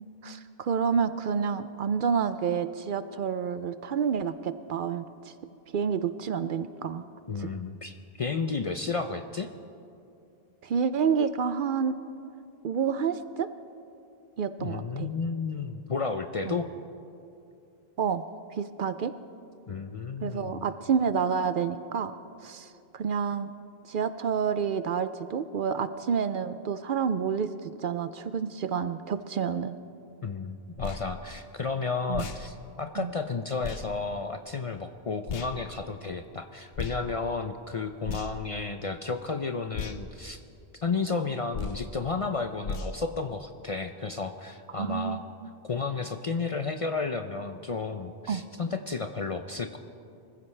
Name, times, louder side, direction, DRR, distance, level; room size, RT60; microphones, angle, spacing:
voice 1, 0.0-5.3 5.7-7.1 7.4-7.5 10.6-11.9 12.6-13.5 14.4-15.1 16.5-16.6 18.0-18.2 18.6-19.1 20.2-23.5 23.9-27.5 27.8-29.8 32.1-32.2 33.0-33.1 38.1-38.2 44.7-45.2 48.3-48.4, right 6 dB, 60° right, 12 dB, 0.6 m, -29 dB
voice 2, 7.3-9.5 14.6-16.7 19.7-20.6 30.2-40.4 40.8-45.2 45.7-49.8, left 4 dB, 45° left, 7 dB, 0.5 m, -32 dB
sound 1, 30.8-31.0 32.1-32.4 33.6-33.8 35.3-35.5 36.7-37.0 38.0-38.5 39.7-40.0 41.5-41.8 42.6-42.9, left 5 dB, 70° left, 1.0 m, -35 dB
24.0 x 15.5 x 3.3 m, 2.6 s
omnidirectional pair, 1.1 m